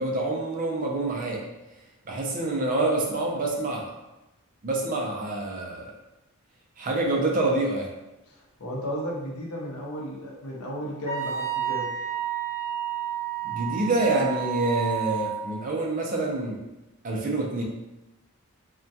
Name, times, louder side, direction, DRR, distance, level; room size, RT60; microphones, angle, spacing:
voice 1, 0.0-1.4 2.1-3.9 4.6-5.9 6.8-7.9 13.4-16.6 17.0-17.6, right 2 dB, 35° right, -1 dB, 0.3 m, -27 dB
voice 2, 8.3-11.9, equal, 80° left, -3 dB, 0.7 m, -34 dB
Wind instrument woodwind instrument, 11.0-15.5, right 10 dB, 25° left, 0.8 m, -30 dB
2.2 x 2.2 x 2.6 m, 0.99 s
head